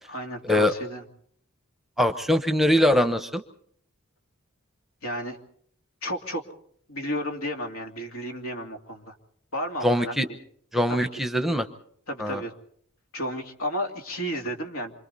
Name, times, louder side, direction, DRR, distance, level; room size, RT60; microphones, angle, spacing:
voice 1, 0.0-1.0 5.0-5.4 6.0-6.4 6.9-9.1 9.5-10.4 10.9-11.2 12.1-12.5 13.1-14.9, equal, 75° left, 4 dB, 2.7 m, -32 dB
voice 2, 2.0-3.4 9.8-10.3 10.7-11.7 12.2-12.4, left 1 dB, ahead, 8 dB, 0.9 m, -22 dB
27.5 x 25.5 x 4.1 m, 0.63 s
head